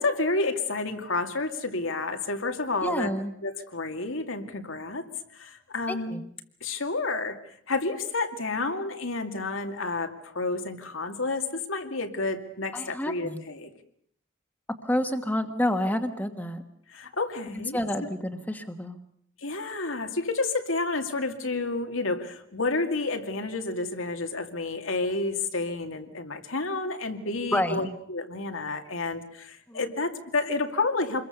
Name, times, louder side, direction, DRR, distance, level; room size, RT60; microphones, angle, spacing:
voice 1, 0.0-3.1 3.4-5.1 5.3-6.1 6.6-7.4 7.7-13.7 16.9-18.1 19.4-31.3, left 3 dB, 85° left, 6 dB, 2.4 m, -30 dB
voice 2, 2.8-3.3 5.9-6.2 12.7-13.4 14.8-16.6 17.7-19.0 27.5-27.9 29.7-29.8, left 1 dB, 10° left, 5 dB, 1.4 m, -29 dB
27.5 x 22.0 x 6.8 m, 0.68 s
head